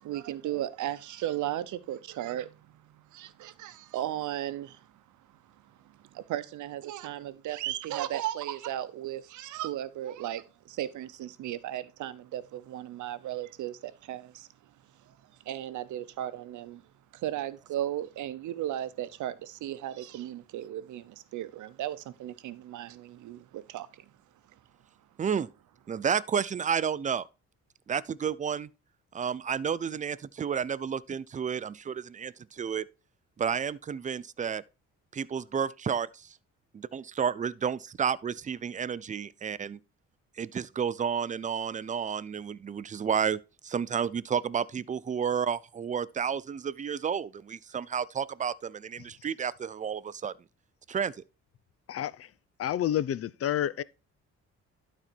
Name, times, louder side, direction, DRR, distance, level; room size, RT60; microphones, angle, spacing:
voice 1, 0.0-2.5 3.1-4.8 6.1-14.5 15.5-16.8 17.1-24.0, right 12 dB, 75° right, 0.8 m, -35 dB
voice 2, 25.9-27.3 27.9-28.7 29.1-32.8 33.4-34.6 35.1-36.4 36.7-39.8 40.4-50.3 50.9-51.1, right 7 dB, 25° right, 0.4 m, -31 dB
voice 3, 51.9-52.3 52.6-53.8, left 11 dB, 50° left, 0.5 m, -29 dB
12.0 x 4.3 x 4.4 m
cardioid pair, 90°, 30 cm